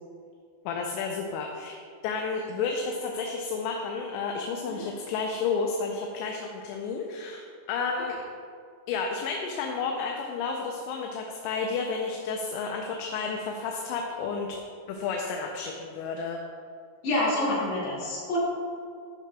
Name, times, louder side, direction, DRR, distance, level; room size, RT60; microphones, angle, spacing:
voice 1, 0.7-1.8 2.0-8.1 8.9-14.5 14.9-16.4, left 5 dB, 85° left, 1 dB, 2.8 m, -31 dB
voice 2, 17.0-18.4, left 1 dB, 70° left, -8 dB, 4.1 m, -27 dB
12.0 x 5.8 x 2.3 m, 2.2 s
omnidirectional pair, 5.1 m